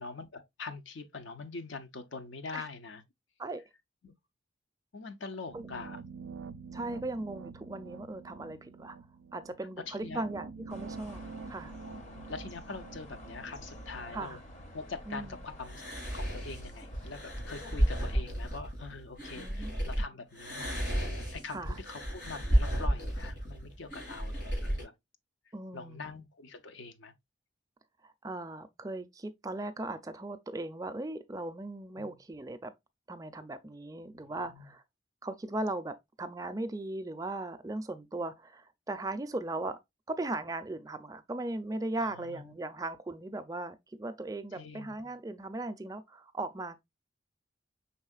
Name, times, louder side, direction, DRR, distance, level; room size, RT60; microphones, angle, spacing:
voice 1, 0.0-3.0 4.0-4.1 4.9-6.0 9.9-10.2 11.8-14.4 14.7-20.8 21.3-24.9 25.7-27.1 32.0-32.2 34.1-34.7 42.0-42.6 44.5-45.0, left 4 dB, 80° left, 0.7 m, -44 dB
sound 1, 5.5-14.4, right 5 dB, 90° right, 0.4 m, -47 dB
voice 2, 6.7-9.0 9.3-11.2 11.5-11.8 14.1-14.4 15.1-15.4 19.3-19.8 21.5-21.8 25.5-26.2 28.0-32.7 33.1-34.8 35.2-39.8 40.1-46.8, right 2 dB, 20° right, 0.4 m, -38 dB
sound 2, 10.7-18.2, equal, 40° left, 0.7 m, -48 dB
sound 3, 15.6-20.0 20.3-24.8, equal, 65° left, 3.3 m, -32 dB
5.4 x 3.6 x 2.3 m
head